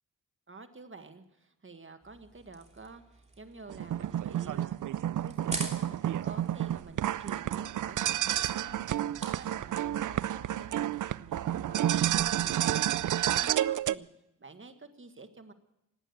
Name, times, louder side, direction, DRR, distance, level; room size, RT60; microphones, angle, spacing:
voice 1, 0.5-4.8 5.1-14.1 14.4-15.5, right 3 dB, 35° right, 7 dB, 1.7 m, -50 dB
sound 1, 2.0-10.6, right 2 dB, 20° right, 2.8 m, -46 dB
sound 2, 3.7-13.9, right 12 dB, 65° right, 0.5 m, -30 dB
19.0 x 9.0 x 8.1 m, 0.87 s
cardioid pair, 70°, 33 cm